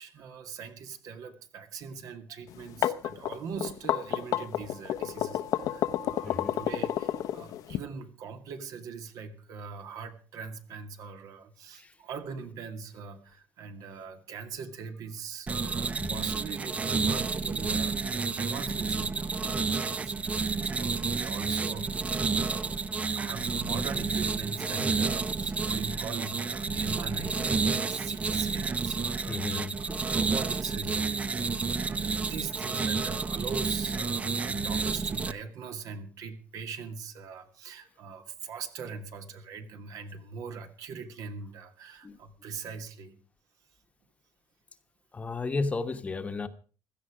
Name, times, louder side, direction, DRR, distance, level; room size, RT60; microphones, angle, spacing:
voice 1, 0.0-31.6 31.8-43.2, right 5 dB, 65° right, 7 dB, 2.3 m, -42 dB
sound 1, 2.5-7.8, left 12 dB, 70° left, 0.9 m, -29 dB
voice 2, 6.2-6.6 11.7-11.9 16.0-16.3 23.9-24.0 26.3-26.4 29.3-30.1 42.0-42.2 45.1-46.5, left 3 dB, 20° left, 9 dB, 1.2 m, -34 dB
sound 2, 15.5-35.3, right 4 dB, 20° right, 0.6 m, -30 dB
16.5 x 13.0 x 5.0 m, 0.40 s
cardioid pair, 140°, 6 cm